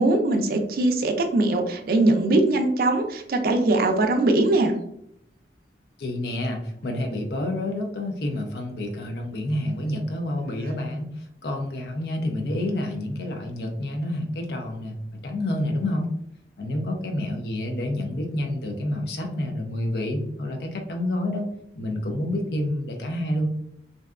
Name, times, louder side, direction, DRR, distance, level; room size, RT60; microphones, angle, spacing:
voice 1, 0.0-4.8, right 2 dB, 55° right, 5 dB, 0.4 m, -21 dB
voice 2, 6.0-16.1 16.6-21.5 21.8-23.5, left 1 dB, 65° left, 3 dB, 0.5 m, -28 dB
2.6 x 2.2 x 2.3 m, 0.73 s
head